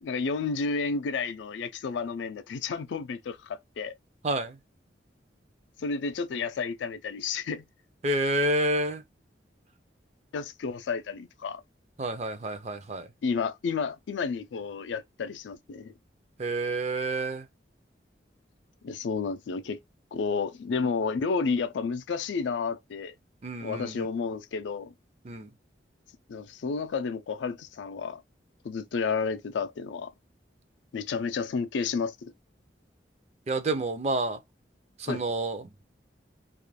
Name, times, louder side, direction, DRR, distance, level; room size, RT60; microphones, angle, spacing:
voice 1, 0.0-3.9 5.8-7.7 10.3-11.6 13.2-15.9 18.8-19.8 20.1-23.1 23.6-24.9 26.3-28.2 28.6-30.1 30.9-32.3 35.1-35.2, left 5 dB, 85° left, 0.4 m, -31 dB
voice 2, 4.2-4.6 8.0-9.0 12.0-13.1 16.4-17.5 23.4-24.1 25.2-25.5 33.5-34.4 35.0-35.7, right 2 dB, 35° right, 0.4 m, -29 dB
2.4 x 2.2 x 3.1 m
head